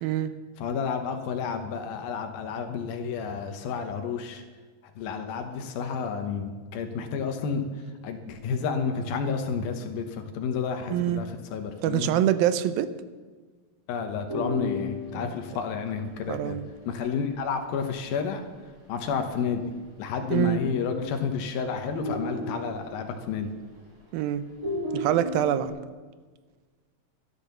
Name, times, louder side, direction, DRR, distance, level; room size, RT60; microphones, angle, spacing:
voice 1, 0.0-0.3 10.9-11.2 11.8-12.9 15.1-15.3 16.3-16.7 20.3-20.6 24.1-24.5 24.9-25.7, right 12 dB, 90° right, 13 dB, 2.6 m, -25 dB
voice 2, 0.6-4.4 5.0-7.6 8.0-12.1 13.9-16.6 16.9-18.4 18.9-19.6 20.0-23.5, left 6 dB, 85° left, 5 dB, 2.9 m, -30 dB
sound 1, 14.3-19.3 19.6-19.7 20.0-20.4 20.8-21.4 21.8-24.1 24.5-25.7, left 1 dB, 25° right, 4.4 m, -36 dB
12.0 x 12.0 x 6.8 m, 1.4 s
omnidirectional pair, 4.1 m